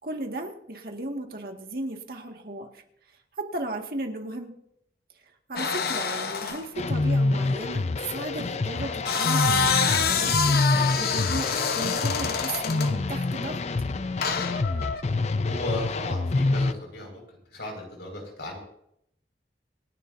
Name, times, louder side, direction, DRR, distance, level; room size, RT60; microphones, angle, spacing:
voice 1, 0.0-2.8 3.4-4.5 5.5-10.6 11.0-13.6, right 2 dB, 55° right, 3 dB, 2.0 m, -35 dB
sound 1, 5.6-6.7 8.8-13.0 14.2-15.0, left 5 dB, 55° left, 1.0 m, -26 dB
sound 2, 6.8-16.7, left 3 dB, 40° left, 0.4 m, -27 dB
voice 2, 15.4-17.2 17.5-18.6, left 1 dB, 75° left, 1 dB, 5.4 m, -35 dB
27.5 x 11.0 x 2.7 m, 0.73 s
head